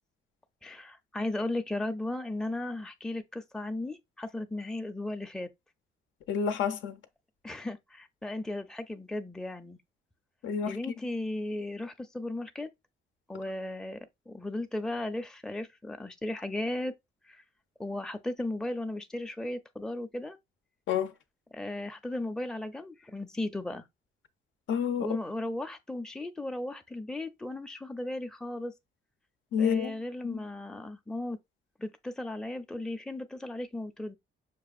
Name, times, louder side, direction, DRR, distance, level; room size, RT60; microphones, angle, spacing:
voice 1, 0.6-5.5 7.4-9.8 10.7-12.7 13.3-16.9 17.3-17.4 17.8-20.4 21.5-23.9 25.0-28.7 29.6-31.4 31.8-34.1, left 1 dB, 5° left, 0.5 m, -36 dB
voice 2, 6.3-7.0 10.4-10.8 20.9-21.1 24.7-25.1 29.5-30.0 30.2-30.4, left 7 dB, 75° left, 0.6 m, -29 dB
6.0 x 2.4 x 2.3 m
cardioid pair, 90°, 20 cm